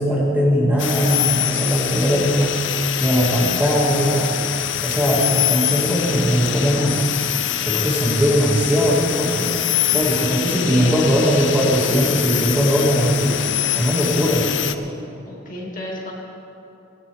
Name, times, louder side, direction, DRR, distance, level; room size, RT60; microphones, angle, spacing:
voice 1, 0.0-2.6 3.0-4.4 4.8-7.1 7.7-9.5 9.9-13.4 13.8-14.4, equal, 10° right, -4 dB, 2.1 m, -19 dB
sound 1, 0.8-14.7, left 11 dB, 65° left, 0.6 m, -24 dB
voice 2, 10.5-10.9 15.3-16.1, left 1 dB, 40° left, -3 dB, 2.4 m, -31 dB
17.0 x 17.0 x 3.5 m, 2.8 s
head